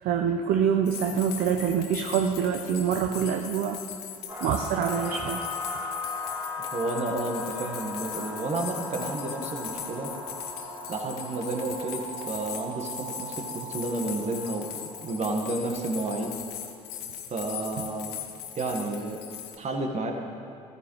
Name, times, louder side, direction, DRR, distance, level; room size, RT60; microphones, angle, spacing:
voice 1, 0.0-3.8 4.4-5.5, right 7 dB, 55° right, 4 dB, 0.7 m, -25 dB
sound 1, 0.8-19.5, left 10 dB, 60° left, 1.2 m, -39 dB
sound 2, 4.3-16.4, left 1 dB, 10° right, 2.2 m, -38 dB
voice 2, 6.6-10.1 10.9-12.0 12.3-16.3 17.3-18.1 18.5-19.2 19.6-20.1, right 2 dB, 40° right, 3 dB, 1.6 m, -31 dB
14.5 x 13.5 x 3.2 m, 2.7 s
hypercardioid pair, 55°, 18 cm